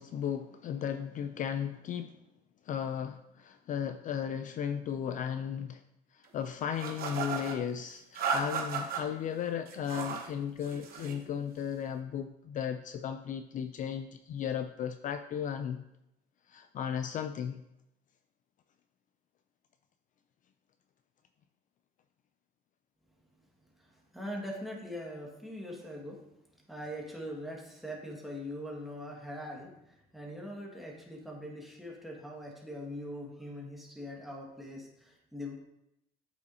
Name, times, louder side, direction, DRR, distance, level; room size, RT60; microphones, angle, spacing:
voice 1, 0.0-2.2 2.6-5.8 6.1-15.8 16.5-17.6, left 8 dB, 50° left, 9 dB, 0.4 m, -35 dB
sound 1, 6.8-7.6 8.1-9.0 9.7-10.3 10.6-11.2, right 5 dB, 60° right, 1.2 m, -34 dB
voice 2, 23.8-26.2 26.7-35.5, equal, ahead, -2 dB, 1.7 m, -42 dB
8.2 x 5.5 x 2.8 m, 0.85 s
cardioid pair, 110°, 17 cm